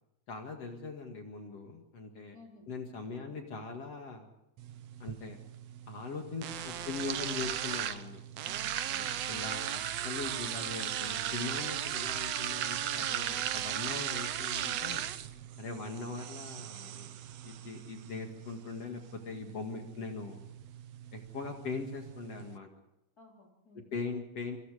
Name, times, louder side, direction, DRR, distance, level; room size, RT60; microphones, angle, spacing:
voice 1, 0.3-2.4 2.7-4.3 5.0-5.4 5.9-8.2 9.0-15.1 15.6-17.1 17.4-20.5 21.1-22.7 23.9-24.6, left 4 dB, 55° left, 3 dB, 2.8 m, -41 dB
voice 2, 2.3-2.7 3.2-3.4 6.5-7.4 8.4-9.2 15.6-16.0 19.7-20.0 23.2-23.9, left 2 dB, 25° left, 1 dB, 4.2 m, -57 dB
sound 1, 4.6-22.6, right 11 dB, 65° right, 1.8 m, -37 dB
27.0 x 26.0 x 5.0 m, 0.87 s
omnidirectional pair, 3.7 m